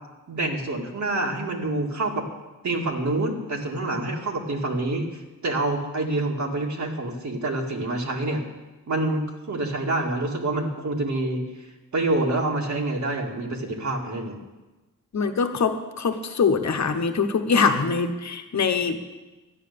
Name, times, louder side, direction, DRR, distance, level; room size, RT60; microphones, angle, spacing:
voice 1, 0.3-2.2 2.6-5.1 5.4-8.4 8.9-11.4 11.9-14.4, right 2 dB, 60° right, 0 dB, 2.2 m, -27 dB
voice 2, 15.1-19.0, left 5 dB, 55° left, 7 dB, 1.1 m, -23 dB
13.0 x 9.9 x 6.9 m, 1.1 s
wide cardioid pair, 115°, 33 cm